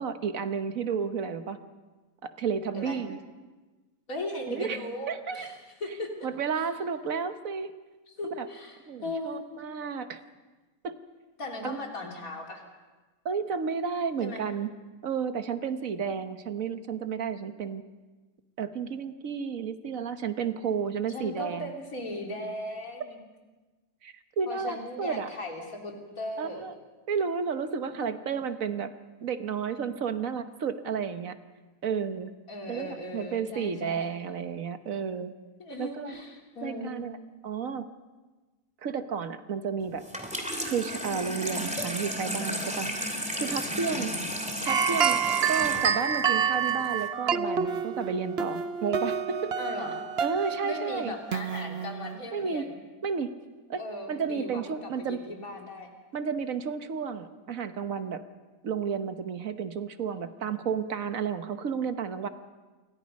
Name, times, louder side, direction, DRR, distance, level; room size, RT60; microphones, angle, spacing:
voice 1, 0.0-1.6 2.2-3.2 4.5-4.8 5.1-5.5 6.2-7.7 8.2-8.5 8.9-10.2 10.8-10.9 11.6-11.8 13.2-14.7 15.0-17.8 18.6-21.7 24.0-25.3 26.4-26.7 27.1-28.9 29.2-31.4 31.8-32.3 32.7-35.3 35.8-36.1 36.6-37.2 37.4-37.9 38.8-40.0 40.6-42.9 43.3-44.1 44.6-45.2 45.5-49.5 50.2-51.1 52.3-52.7 53.0-53.3 53.7-53.8 54.1-55.2 56.1-58.2 58.6-62.3, right 6 dB, 65° right, 9 dB, 1.5 m, -32 dB
voice 2, 4.1-6.1 6.5-6.7 8.1-9.4 11.4-12.6 14.2-14.4 21.1-23.2 24.5-26.6 32.5-34.2 35.6-37.1 43.8-44.2 49.6-50.0 50.6-52.8 53.8-55.9, left 1 dB, 65° left, 1 dB, 3.9 m, -38 dB
Water tap faucet / Sink (filling or washing), 40.0-47.1, equal, 5° right, 2.6 m, -34 dB
sound 1, 44.7-52.2, right 7 dB, 50° right, 1.0 m, -28 dB
28.5 x 23.0 x 5.4 m, 1.2 s
omnidirectional pair, 1.6 m